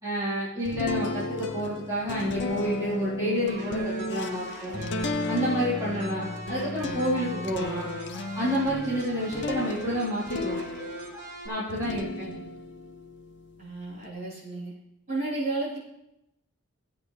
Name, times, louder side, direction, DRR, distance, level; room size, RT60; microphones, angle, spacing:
voice 1, 0.0-4.8 5.3-7.9 8.3-10.6 11.4-12.3, equal, 15° right, -12 dB, 3.9 m, -29 dB
sound 1, 0.7-11.2 11.7-14.0, left 2 dB, 55° left, 0.7 m, -34 dB
sound 2, 3.5-11.5, right 1 dB, 60° right, 3.5 m, -40 dB
voice 2, 11.9-12.4 13.6-14.7 15.1-15.8, right 2 dB, 35° right, -10 dB, 4.9 m, -33 dB
15.5 x 8.5 x 3.4 m, 0.86 s
head